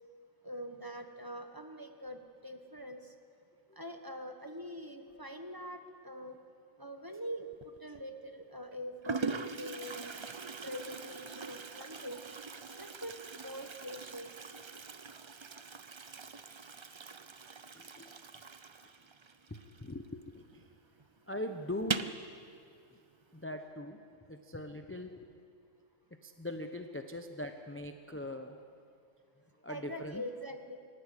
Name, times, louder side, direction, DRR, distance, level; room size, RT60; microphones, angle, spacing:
voice 1, 0.4-3.2 3.7-6.4 6.8-10.1 10.6-12.3 12.7-14.3 16.9-17.2 17.7-17.8 18.4-18.8 19.5-19.7 21.1-21.2 29.7-30.8, equal, 15° right, 5 dB, 1.2 m, -44 dB
Toilet flush, 7.5-8.0 8.7-8.8 9.0-20.3 20.6-20.7 21.0-21.1 21.8-22.2, right 5 dB, 40° right, 0.4 m, -42 dB
voice 2, 17.7-18.1 18.8-18.9 19.8-20.7 21.3-22.1 23.3-24.0 24.3-25.3 26.2-28.6 29.6-30.2, left 1 dB, 10° left, 6 dB, 0.7 m, -41 dB
24.0 x 13.5 x 9.9 m, 2.4 s
omnidirectional pair, 1.4 m